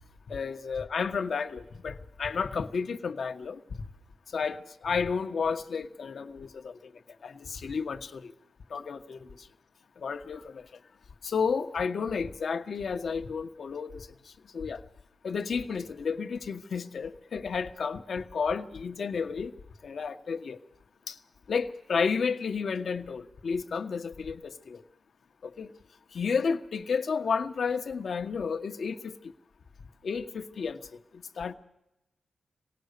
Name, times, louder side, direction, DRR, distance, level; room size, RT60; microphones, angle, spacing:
voice 1, 0.3-3.6 4.3-6.8 7.2-8.3 8.7-9.3 10.0-10.6 11.2-14.1 14.5-14.8 15.2-19.5 19.8-20.6 21.1-21.2 21.5-24.8 25.6-25.7 26.1-29.1 30.0-30.8 31.4-31.5, left 5 dB, 60° left, 1.3 m, -31 dB
26.5 x 18.5 x 6.7 m
wide cardioid pair, 150°, 0 cm